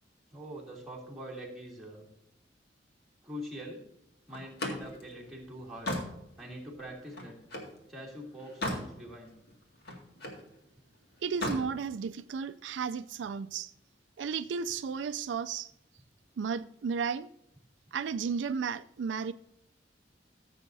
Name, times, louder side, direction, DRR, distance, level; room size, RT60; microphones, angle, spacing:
voice 1, 0.3-2.0 3.2-3.8 4.3-5.9 6.4-7.4 7.9-9.3, equal, ahead, 2.8 m, -44 dB
Slam, 4.3-7.8 8.2-8.9 9.3-10.5 11.2-11.7, left 1 dB, 60° left, 2.1 m, -37 dB
voice 2, 11.2-13.7 14.2-15.7 16.4-17.3 17.9-19.3, right 6 dB, 80° right, 0.4 m, -33 dB
15.0 x 7.7 x 2.7 m
head